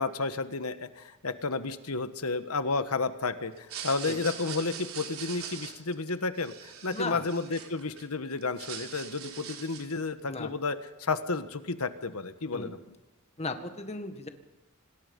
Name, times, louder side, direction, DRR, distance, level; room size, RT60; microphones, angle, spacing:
voice 1, 0.0-12.8, left 3 dB, 80° left, 10 dB, 1.4 m, -32 dB
sound 1, 3.6-8.0 8.4-10.0, right 8 dB, 70° right, 3.6 m, -42 dB
voice 2, 6.9-7.2 10.3-10.5 12.5-12.7 13.4-14.3, left 3 dB, 30° left, 7 dB, 1.7 m, -36 dB
27.0 x 19.5 x 5.4 m, 1.0 s
head